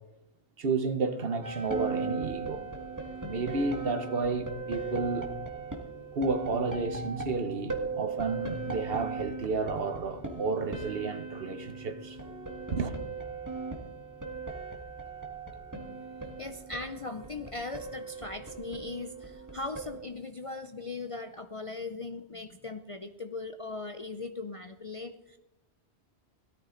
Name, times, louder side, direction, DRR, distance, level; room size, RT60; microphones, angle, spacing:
voice 1, 0.6-2.6 3.2-5.3 6.1-12.2 12.7-12.9, right 4 dB, 60° right, 1.1 m, -31 dB
sound 1, 1.4-20.0, right 4 dB, 15° right, 1.8 m, -38 dB
voice 2, 16.4-25.4, left 3 dB, 40° left, 0.5 m, -39 dB
17.0 x 13.0 x 3.8 m
omnidirectional pair, 1.1 m